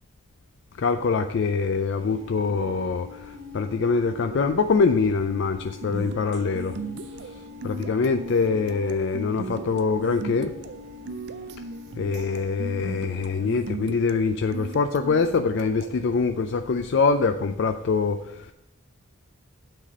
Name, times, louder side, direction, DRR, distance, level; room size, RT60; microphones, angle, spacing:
voice 1, 0.8-6.7 7.6-10.5 12.0-18.5, left 4 dB, 55° left, 0.3 m, -24 dB
sound 1, 2.0-13.2, left 1 dB, 65° right, 0.9 m, -42 dB
sound 2, 5.8-16.1, right 3 dB, 50° right, 0.4 m, -39 dB
9.0 x 4.1 x 5.4 m
head